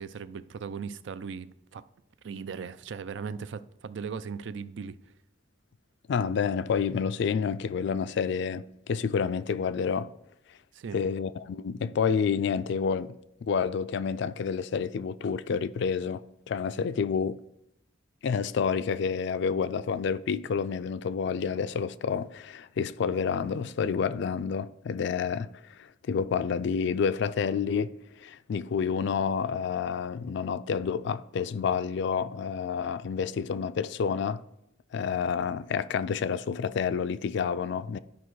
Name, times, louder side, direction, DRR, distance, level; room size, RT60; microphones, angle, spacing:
voice 1, 0.0-1.8 2.2-5.0 10.7-11.0, right 6 dB, 70° right, 0.4 m, -38 dB
voice 2, 6.1-10.1 10.9-13.1 13.4-17.4 18.2-25.5 25.8-27.9 28.2-34.4 34.9-38.0, left 6 dB, 65° left, 0.4 m, -29 dB
12.0 x 5.1 x 3.1 m
head